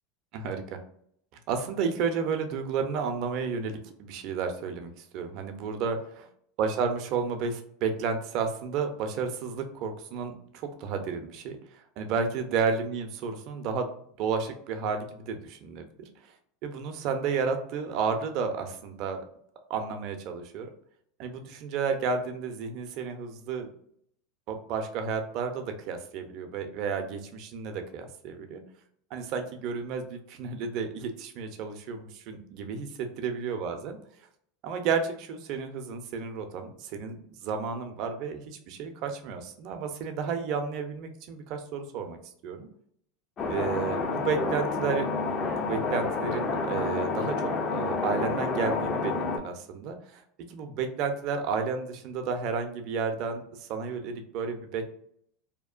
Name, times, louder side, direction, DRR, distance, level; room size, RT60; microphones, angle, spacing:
voice 1, 0.3-0.8 1.5-6.0 6.6-13.9 14.2-16.3 16.6-19.2 19.7-20.7 21.2-23.7 24.5-28.6 29.1-34.0 34.6-42.2 42.4-42.7 43.5-50.2 50.5-54.9, right 5 dB, 55° right, 6 dB, 0.5 m, -32 dB
sound 1, 43.4-49.4, left 4 dB, 35° left, 0.5 m, -29 dB
2.8 x 2.1 x 2.4 m, 0.68 s
supercardioid pair, 115°, 0 cm